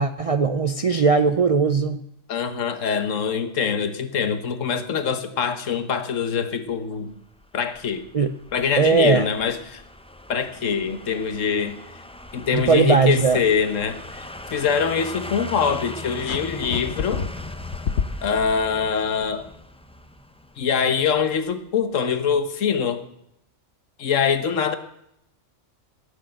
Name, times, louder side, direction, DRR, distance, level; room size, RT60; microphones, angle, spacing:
voice 1, 0.0-2.0 8.1-8.3 8.8-9.2 12.5-13.4, right 5 dB, 55° right, 10 dB, 0.4 m, -19 dB
voice 2, 2.3-7.1 7.5-8.1 8.5-9.8 10.3-11.8 12.3-14.2 14.5-17.2 18.2-19.5 20.6-23.0 24.0-24.8, left 6 dB, 80° left, 10 dB, 1.4 m, -24 dB
sound 1, 6.7-21.6 21.9-22.0, left 1 dB, 5° left, 0.4 m, -40 dB
sound 2, 16.2-18.5, left 6 dB, 65° left, 1.1 m, -29 dB
17.0 x 6.6 x 7.7 m, 0.77 s
omnidirectional pair, 1.3 m